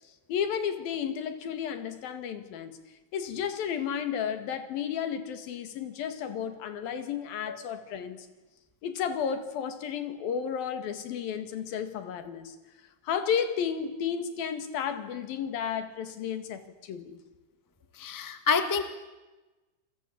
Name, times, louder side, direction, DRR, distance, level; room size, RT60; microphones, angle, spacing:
voice 1, 0.3-2.8 3.1-8.3 8.8-12.6 13.0-17.2, left 8 dB, 85° left, 3.8 m, -32 dB
voice 2, 17.9-18.8, left 5 dB, 15° left, 0.6 m, -27 dB
29.0 x 21.0 x 8.6 m
omnidirectional pair, 4.0 m